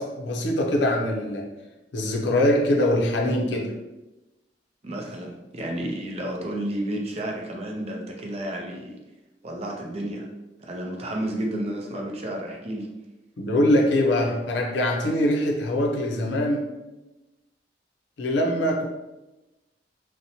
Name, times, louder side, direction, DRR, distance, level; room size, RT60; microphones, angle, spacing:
voice 1, 0.0-1.5 1.9-3.8 13.4-16.7 18.2-18.9, left 1 dB, 90° left, 1 dB, 0.5 m, -23 dB
voice 2, 4.8-9.0 9.4-10.3 10.6-12.9, right 1 dB, 35° right, 0 dB, 0.5 m, -31 dB
2.7 x 2.1 x 2.7 m, 1.0 s
head